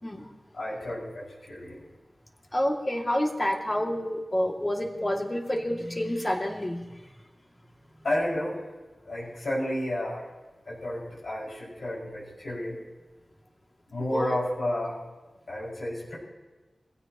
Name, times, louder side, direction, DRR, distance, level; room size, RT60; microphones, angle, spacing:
voice 1, 0.5-1.8 8.0-8.6 9.1-10.3 10.7-12.8 13.9-15.0 15.5-16.2, left 1 dB, 80° left, -7 dB, 5.5 m, -31 dB
voice 2, 2.5-7.1 14.1-14.4, left 1 dB, 25° left, 1 dB, 2.3 m, -28 dB
23.5 x 16.0 x 3.0 m, 1.2 s
wide cardioid pair, 80°, 0 cm